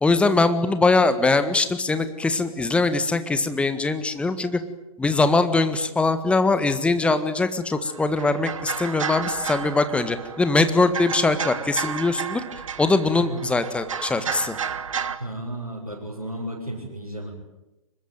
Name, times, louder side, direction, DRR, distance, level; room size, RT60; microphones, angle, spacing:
voice 1, 0.0-4.6 5.0-12.4 12.8-14.6, left 3 dB, 5° left, 11 dB, 1.7 m, -22 dB
sound 1, 7.7-15.2, right 7 dB, 60° right, 1.9 m, -32 dB
voice 2, 13.2-13.5 15.1-17.3, right 1 dB, 80° right, -2 dB, 7.6 m, -33 dB
25.0 x 22.0 x 9.2 m, 0.96 s
figure-of-eight pair, 115°, 18 cm